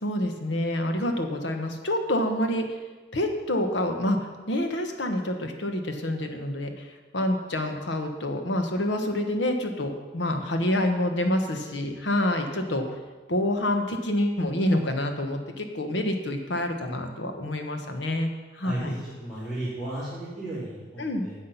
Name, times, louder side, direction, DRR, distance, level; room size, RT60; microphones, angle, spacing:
voice 1, 0.0-2.8 3.1-12.9 13.3-18.3 18.5-19.0 21.0-21.3, left 1 dB, 80° left, 5 dB, 1.2 m, -27 dB
voice 2, 18.6-21.3, right 1 dB, 10° left, -13 dB, 3.3 m, -34 dB
10.0 x 7.3 x 5.6 m, 1.3 s
head